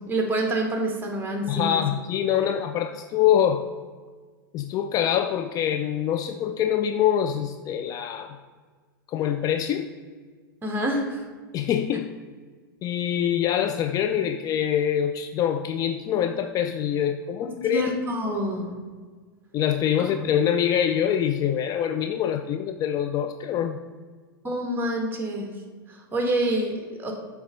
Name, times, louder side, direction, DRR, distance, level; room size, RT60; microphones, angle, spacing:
voice 1, 0.0-1.8 2.4-2.5 10.6-11.2 17.4-18.7 20.0-20.1 24.4-25.5 25.9-27.1, right 1 dB, 15° right, 2 dB, 1.4 m, -27 dB
voice 2, 1.5-3.7 4.5-8.4 9.1-9.9 11.5-12.1 12.8-17.9 19.5-23.8, left 9 dB, 30° left, 8 dB, 0.3 m, -24 dB
6.9 x 3.4 x 5.0 m, 1.5 s
hypercardioid pair, 100°, 12 cm